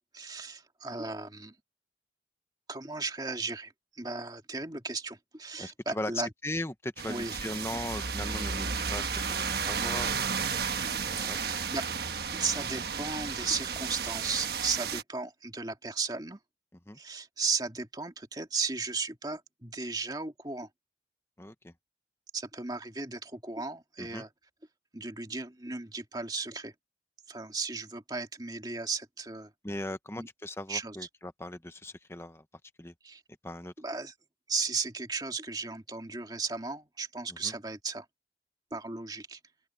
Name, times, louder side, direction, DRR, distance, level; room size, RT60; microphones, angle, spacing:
voice 1, 0.1-1.5 2.7-6.3 7.1-7.4 11.2-11.9 12.3-16.4 17.0-20.7 22.3-24.3 24.9-26.7 27.3-29.5 30.2-30.3 30.7-31.0 33.0-33.2 33.8-34.1 34.5-38.1 38.7-39.4, right 4 dB, 20° right, 2.2 m, -35 dB
voice 2, 5.6-10.3 11.2-11.4 16.9-17.0 21.4-21.7 24.0-24.2 29.6-32.4 32.8-32.9 33.4-33.7 37.3-37.5, left 1 dB, 15° left, 1.0 m, -38 dB
sound 1, 7.0-15.0, right 6 dB, 60° right, 1.3 m, -33 dB
open air
head